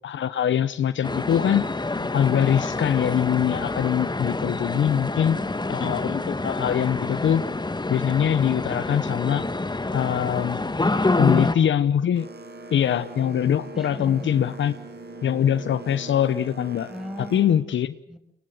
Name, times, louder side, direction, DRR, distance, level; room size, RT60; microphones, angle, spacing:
voice 1, 0.0-5.4 5.7-7.4 7.9-9.5 9.9-10.6 11.2-12.3 12.7-14.7 15.2-16.9 17.2-17.9, left 9 dB, 70° left, 1.0 m, -23 dB
sound 1, 1.0-11.6, left 2 dB, 20° left, 1.8 m, -27 dB
voice 2, 5.0-5.8 10.8-11.6 13.7-14.4 16.9-17.6 18.1-18.2, equal, ahead, 6.7 m, -38 dB
Boat Water vehicle, 12.1-17.4, right 2 dB, 60° right, 6.2 m, -41 dB
27.5 x 23.0 x 7.9 m
supercardioid pair, 55°, 20 cm